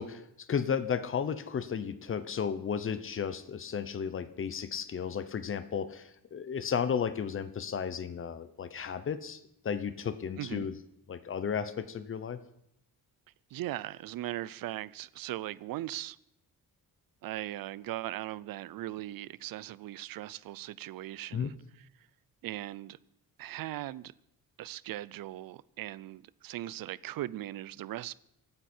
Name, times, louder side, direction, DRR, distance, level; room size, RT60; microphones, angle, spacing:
voice 1, 0.0-9.4 9.6-10.7 11.1-12.4 21.3-21.5, left 7 dB, 35° left, 0.8 m, -34 dB
voice 2, 10.4-10.7 13.5-16.2 17.2-21.9 22.4-23.0 23.4-24.1 24.6-28.1, right 15 dB, 70° right, 0.6 m, -39 dB
25.0 x 9.6 x 4.4 m
cardioid pair, 160°, 36 cm